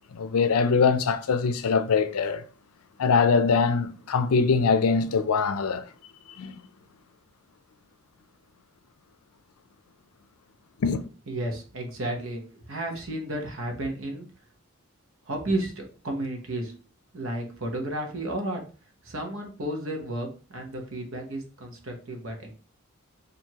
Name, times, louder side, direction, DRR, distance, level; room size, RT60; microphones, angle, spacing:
voice 1, 0.1-2.4 3.0-5.8 6.4-6.6 10.8-11.0, left 5 dB, 90° left, 0.5 m, -23 dB
voice 2, 11.3-14.3 15.3-16.7 17.1-18.6 19.0-22.5, right 1 dB, 70° right, 0.9 m, -32 dB
4.5 x 2.6 x 2.8 m
head